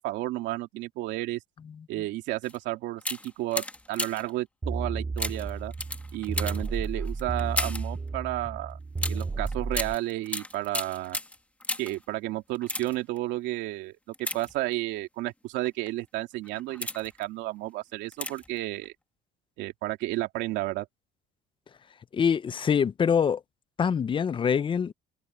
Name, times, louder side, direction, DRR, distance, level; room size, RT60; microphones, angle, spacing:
voice 1, 0.0-1.4 1.9-5.7 6.1-8.8 9.1-11.2 11.8-18.9 19.6-20.9, right 17 dB, 75° right, 2.6 m, -32 dB
sound 1, 2.4-2.6 3.0-4.4 5.2-8.0 9.0-12.0 12.5-13.2 14.1-15.0 15.6-15.9 16.4-17.2 18.1-18.6 18.8-18.9, left 1 dB, 5° left, 1.4 m, -35 dB
sound 2, 4.6-10.0, right 4 dB, 20° right, 5.8 m, -33 dB
voice 2, 22.1-23.4 23.8-24.9, left 7 dB, 25° left, 0.6 m, -24 dB
cardioid pair, 120°, 19 cm